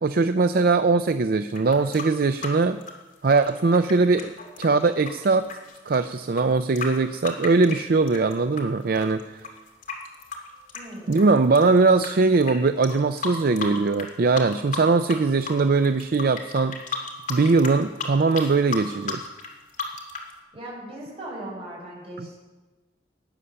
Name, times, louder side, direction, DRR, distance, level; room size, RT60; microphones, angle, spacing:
voice 1, 0.0-2.8 3.2-4.3 4.6-5.5 5.9-9.4 11.1-16.8 17.3-19.2 22.2-22.3, right 3 dB, 55° right, 10 dB, 0.5 m, -21 dB
sound 1, 1.5-8.6 9.0-12.1 12.4-12.5 12.8-14.1 14.4-15.2 15.4-20.3, left 5 dB, 50° left, 2.7 m, -34 dB
voice 2, 10.7-11.2 20.5-22.4, right 1 dB, 35° right, -4 dB, 6.6 m, -38 dB
18.0 x 9.9 x 6.9 m, 1.2 s
head